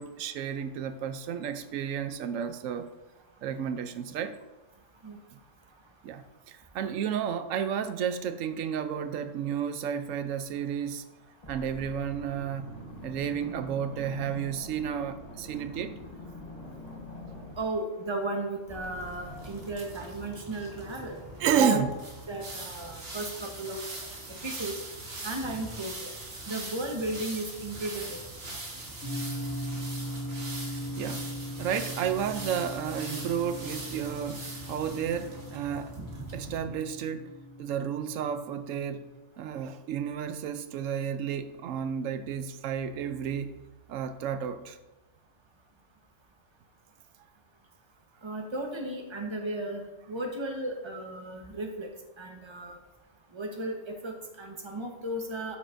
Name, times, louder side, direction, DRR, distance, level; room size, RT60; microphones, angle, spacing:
voice 1, 0.0-2.9 3.4-4.3 6.0-11.0 11.5-12.7 13.0-15.9 21.4-21.9 31.0-31.2 31.6-35.9 36.3-37.3 37.6-39.0 39.4-43.5 43.9-44.8, right 8 dB, 90° right, 1.0 m, -32 dB
sound 1, 10.8-11.0 11.4-18.3 18.7-19.8, left 1 dB, 30° left, 1.3 m, -44 dB
voice 2, 17.6-21.2 21.5-21.8 22.3-23.8 24.4-24.7 25.2-26.1 26.5-28.2 48.2-51.9 52.2-52.8 53.3-55.6, right 2 dB, 25° right, 1.1 m, -34 dB
sound 2, 18.8-36.6, right 2 dB, 55° right, 1.7 m, -42 dB
sound 3, 29.0-39.2, equal, 65° left, 2.0 m, -39 dB
12.0 x 6.2 x 2.6 m
omnidirectional pair, 1.3 m